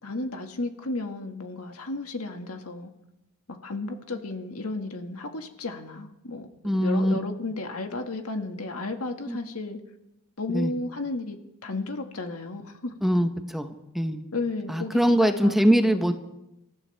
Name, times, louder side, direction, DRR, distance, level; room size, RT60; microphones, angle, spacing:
voice 1, 0.0-2.9 3.5-6.5 6.7-9.8 10.4-12.9 14.3-15.6 15.8-15.9, left 2 dB, 75° left, 5 dB, 1.7 m, -33 dB
voice 2, 6.6-7.2 9.3-9.4 10.5-10.7 13.0-14.2 14.7-16.1, equal, ahead, 7 dB, 0.8 m, -22 dB
26.5 x 14.0 x 3.4 m, 0.89 s
head